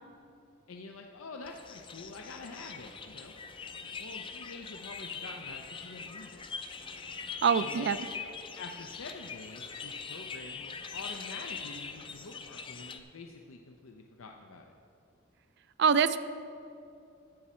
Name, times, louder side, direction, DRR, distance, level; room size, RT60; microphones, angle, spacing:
voice 1, 0.7-3.3 4.0-6.4 7.6-14.7, left 3 dB, 80° left, 3 dB, 0.6 m, -47 dB
sound 1, 1.4-13.0, left 5 dB, 25° left, 0.4 m, -42 dB
voice 2, 7.4-8.0 15.8-16.2, right 6 dB, 55° right, 14 dB, 0.4 m, -24 dB
12.5 x 8.3 x 4.3 m, 2.8 s
head